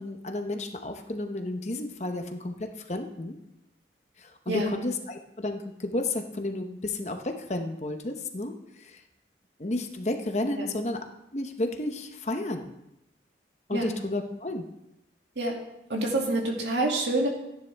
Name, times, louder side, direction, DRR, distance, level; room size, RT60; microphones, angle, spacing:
voice 1, 0.0-3.4 4.2-9.0 9.6-11.0 11.3-12.6 13.7-14.7, left 2 dB, 40° left, 5 dB, 0.9 m, -32 dB
voice 2, 15.9-17.3, right 2 dB, 85° right, -1 dB, 2.5 m, -27 dB
15.0 x 9.7 x 3.5 m, 0.86 s
head